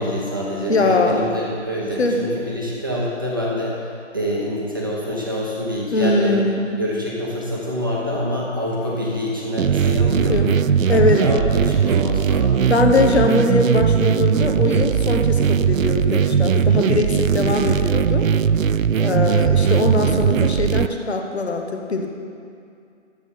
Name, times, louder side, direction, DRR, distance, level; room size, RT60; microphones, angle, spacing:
voice 1, 0.0-3.8 4.1-6.4 6.8-10.4 10.9-12.6 19.0-19.3, left 1 dB, 15° right, -5 dB, 1.0 m, -26 dB
voice 2, 0.7-1.3 2.0-2.2 5.9-6.8 10.3-10.6 10.9-11.2 12.7-18.3 19.0-22.1, left 3 dB, 55° left, 3 dB, 1.3 m, -21 dB
sound 1, 9.6-20.9, right 8 dB, 90° right, 0.6 m, -19 dB
12.5 x 8.7 x 5.4 m, 2.4 s
figure-of-eight pair, 175°, 39 cm